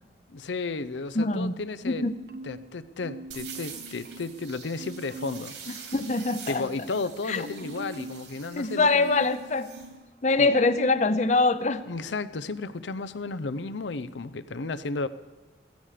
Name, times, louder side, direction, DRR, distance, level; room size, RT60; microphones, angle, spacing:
voice 1, 0.3-2.1 2.4-5.5 6.5-9.1 10.4-10.6 11.9-15.1, left 3 dB, 90° left, 14 dB, 0.6 m, -33 dB
voice 2, 1.1-1.6 1.8-2.1 5.7-6.6 7.3-7.5 8.6-9.7 10.2-11.8, left 3 dB, 40° left, 13 dB, 0.7 m, -24 dB
Marimba xylophone, 2.0-2.7 3.0-4.4 4.8-5.5 5.9-10.1 10.4-11.1 11.5-11.7, right 2 dB, 55° right, 0.6 m, -43 dB
sound 1, 3.3-9.9, right 7 dB, 80° right, 3.5 m, -45 dB
15.5 x 15.5 x 5.0 m, 1.2 s
head